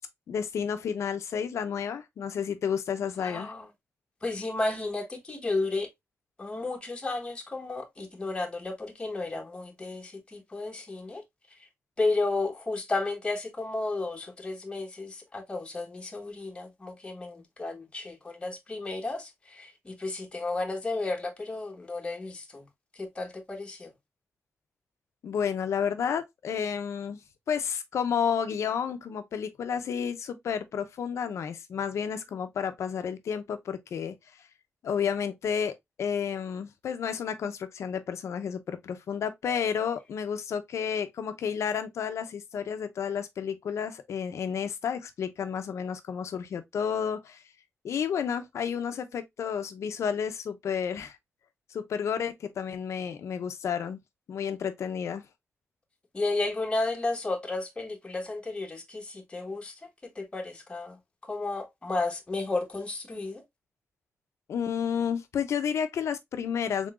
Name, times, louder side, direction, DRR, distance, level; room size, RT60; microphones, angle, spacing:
voice 1, 0.3-3.5 25.2-27.2 27.5-34.1 34.8-47.4 47.8-51.2 51.7-54.0 54.3-55.2 64.5-66.9, left 7 dB, 90° left, 0.7 m, -31 dB
voice 2, 3.2-3.7 4.2-5.9 6.4-11.2 12.0-22.7 23.0-23.9 56.1-59.7 60.1-61.0 61.3-63.4, left 2 dB, 20° left, 1.0 m, -33 dB
3.8 x 3.7 x 2.3 m
wide cardioid pair, 145°, 5 cm